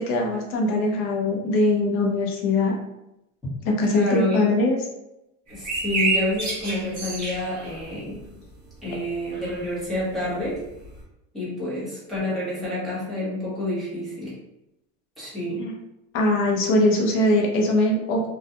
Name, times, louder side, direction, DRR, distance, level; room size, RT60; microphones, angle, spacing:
voice 1, 0.0-2.8 3.7-4.8 15.6-15.7 16.1-18.3, left 2 dB, 35° left, 0 dB, 0.5 m, -21 dB
voice 2, 3.8-4.5 5.5-8.2 8.8-10.6 11.3-14.3 15.2-15.7, left 1 dB, ahead, -11 dB, 0.9 m, -28 dB
sound 1, 5.5-8.8 9.0-11.0, right 3 dB, 20° right, 0.6 m, -29 dB
2.3 x 2.2 x 2.7 m, 0.88 s
supercardioid pair, 160°, 39 cm